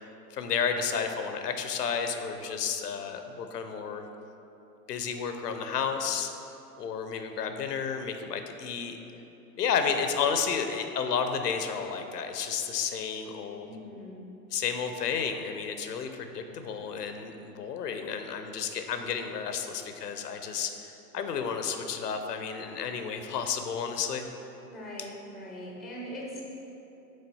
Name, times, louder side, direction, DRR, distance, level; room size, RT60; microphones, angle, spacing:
voice 1, 0.3-4.0 4.9-6.3 6.8-9.0 9.6-13.7 14.5-24.3, left 6 dB, 70° left, 6 dB, 0.7 m, -31 dB
voice 2, 13.6-14.1 24.7-26.4, equal, ahead, -4 dB, 0.5 m, -41 dB
6.4 x 4.0 x 4.1 m, 3.0 s
figure-of-eight pair, 100°, 50 cm